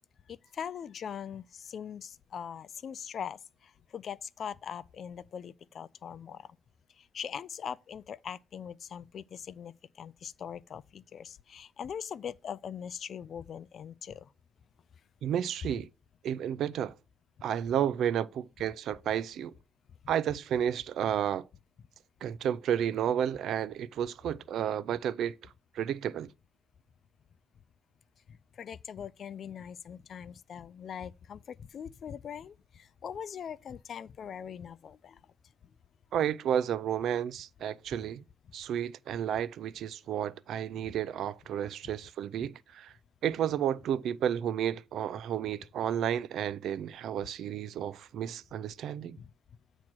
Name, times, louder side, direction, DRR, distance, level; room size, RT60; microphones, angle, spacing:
voice 1, 0.3-6.5 7.0-14.3 28.3-35.2 49.2-49.3, left 8 dB, 45° left, 0.4 m, -41 dB
voice 2, 15.2-15.9 16.2-16.9 17.4-19.5 20.1-21.5 22.2-25.3 25.7-26.3 36.1-38.2 38.5-42.9 43.2-49.2, right 9 dB, 60° right, 0.4 m, -32 dB
8.6 x 3.0 x 6.0 m
cardioid pair, 150°, 0 cm